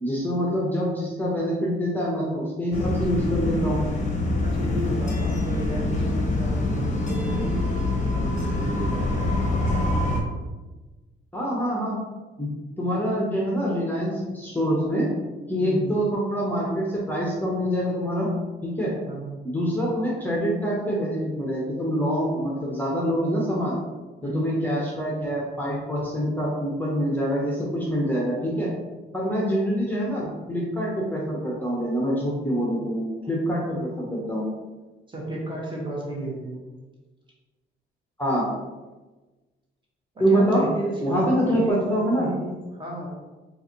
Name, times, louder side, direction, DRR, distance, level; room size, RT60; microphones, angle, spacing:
voice 1, 0.0-3.8 11.3-12.0 12.4-15.1 15.5-18.3 18.6-18.9 19.4-23.8 24.2-28.7 29.1-34.4 38.2-38.5 40.2-40.6 41.0-42.3, equal, 10° left, -5 dB, 0.8 m, -25 dB
sound 1, 2.7-10.2, left 2 dB, 40° left, 0.7 m, -25 dB
voice 2, 4.4-9.4 15.6-15.9 19.1-19.4 24.2-24.6 35.1-36.6 40.1-43.1, right 1 dB, 25° right, -3 dB, 1.1 m, -33 dB
3.8 x 2.6 x 2.9 m, 1.2 s
cardioid pair, 90°, 20 cm